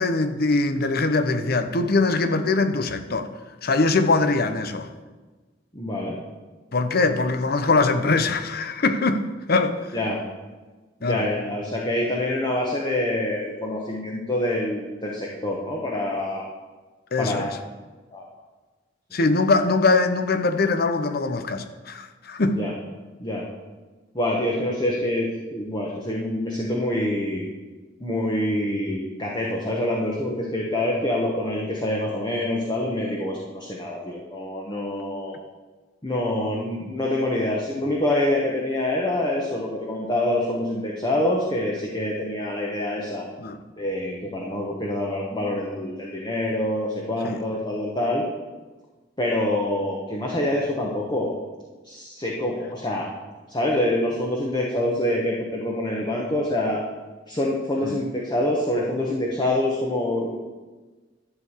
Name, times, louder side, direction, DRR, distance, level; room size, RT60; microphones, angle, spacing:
voice 1, 0.0-3.3 3.6-4.9 6.7-10.0 11.0-11.3 17.1-17.5 19.1-22.7 43.4-43.6 47.2-47.4 57.8-58.0, left 3 dB, 55° left, 0.8 m, -22 dB
voice 2, 5.7-6.2 9.9-10.2 11.0-16.4 17.2-17.6 18.1-18.2 22.5-22.7 23.2-23.5 24.1-27.4 28.0-35.3 36.0-43.3 43.8-48.2 49.2-51.3 51.8-53.1 53.5-56.8 57.3-60.4, left 1 dB, 25° left, 1.2 m, -26 dB
12.0 x 4.7 x 8.1 m
head